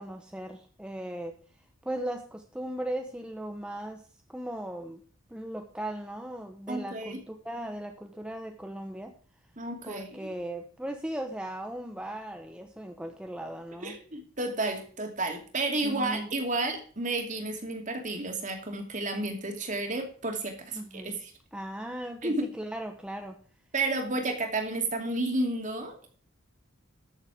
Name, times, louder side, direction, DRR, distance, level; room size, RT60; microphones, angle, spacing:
voice 1, 0.0-1.3 1.8-4.1 4.3-5.0 5.3-9.1 9.8-14.0 15.8-16.3 20.7-21.2 21.5-23.4, right 1 dB, 5° right, 4 dB, 0.9 m, -37 dB
voice 2, 6.7-7.2 9.6-10.3 13.8-21.3 22.2-22.5 23.7-26.1, right 2 dB, 40° right, 4 dB, 2.6 m, -31 dB
13.5 x 7.3 x 4.9 m, 0.43 s
head